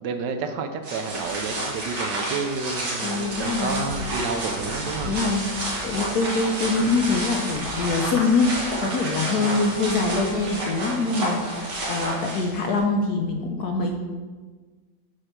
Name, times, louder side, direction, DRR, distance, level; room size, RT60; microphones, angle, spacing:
voice 1, 0.0-5.3 9.4-9.6, right 5 dB, 70° right, 7 dB, 1.2 m, -30 dB
sound 1, 0.8-12.8, right 1 dB, 50° right, 2.1 m, -30 dB
voice 2, 3.0-3.8 5.0-13.9, left 3 dB, 65° left, 2 dB, 1.0 m, -24 dB
Harmonica, 7.8-12.0, left 1 dB, 30° left, 2.4 m, -45 dB
7.8 x 4.1 x 5.9 m, 1.4 s
omnidirectional pair, 2.2 m